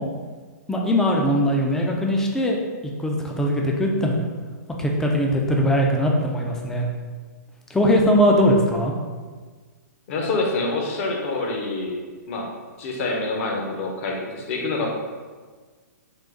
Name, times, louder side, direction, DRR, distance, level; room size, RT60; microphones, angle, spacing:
voice 1, 0.7-2.6 3.0-4.2 4.8-6.9 7.7-8.9, equal, 5° left, 0 dB, 0.4 m, -20 dB
voice 2, 10.1-12.0 12.3-12.5 12.8-14.9, left 3 dB, 45° left, 0 dB, 0.8 m, -26 dB
3.8 x 2.5 x 3.6 m, 1.5 s
hypercardioid pair, 140°, 9 cm